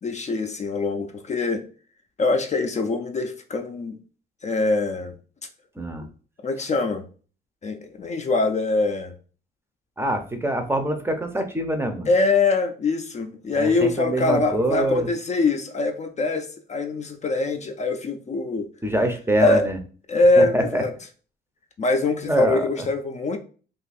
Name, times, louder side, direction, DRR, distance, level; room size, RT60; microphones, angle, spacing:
voice 1, 0.0-1.6 2.2-4.0 4.4-5.1 6.4-7.0 7.6-9.1 12.1-18.7 19.4-19.7 20.1-20.9 21.8-23.4, left 3 dB, 35° left, 5 dB, 0.5 m, -23 dB
voice 2, 5.8-6.1 10.0-12.1 13.5-15.1 18.8-19.8 20.4-20.8 22.2-22.6, right 1 dB, 10° right, 6 dB, 0.6 m, -24 dB
2.6 x 2.4 x 4.1 m, 0.39 s
cardioid pair, 90°, 20 cm